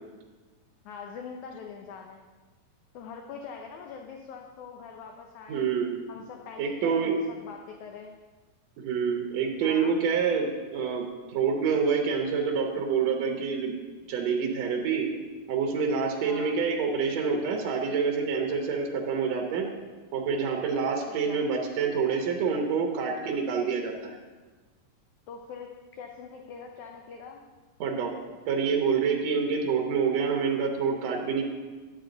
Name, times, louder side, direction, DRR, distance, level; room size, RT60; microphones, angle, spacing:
voice 1, 0.9-2.2 2.9-5.7 6.1-8.1 9.6-10.0 16.2-16.6 21.1-21.4 25.3-27.5, left 6 dB, 75° left, 2 dB, 1.9 m, -43 dB
voice 2, 5.5-6.0 6.6-7.2 8.8-13.7 14.1-15.1 15.5-19.7 20.1-24.2 27.8-28.1 28.5-31.4, right 5 dB, 70° right, 1 dB, 1.7 m, -27 dB
11.0 x 8.0 x 3.9 m, 1.3 s
omnidirectional pair, 4.0 m